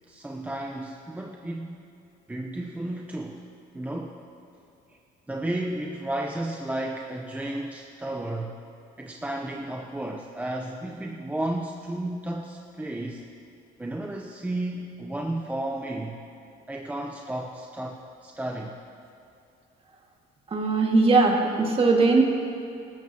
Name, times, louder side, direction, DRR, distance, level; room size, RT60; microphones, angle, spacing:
voice 1, 0.1-1.8 2.3-3.4 3.7-4.2 5.3-8.6 9.0-13.2 13.8-16.2 16.7-18.8, right 1 dB, 10° right, 1 dB, 0.8 m, -33 dB
voice 2, 20.5-22.2, right 3 dB, 35° right, 0 dB, 2.0 m, -20 dB
19.0 x 13.5 x 2.9 m, 2.8 s
cardioid pair, 110°, 17 cm